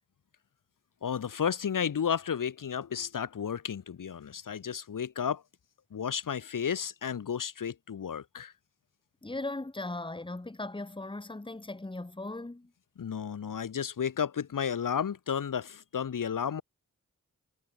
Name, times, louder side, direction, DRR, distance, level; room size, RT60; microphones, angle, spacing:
voice 1, 1.0-5.4 5.9-8.5 13.0-16.6, left 7 dB, 85° left, 1.6 m, -32 dB
voice 2, 9.2-12.7, left 2 dB, 15° left, 1.5 m, -38 dB
cardioid pair, 60°, 32 cm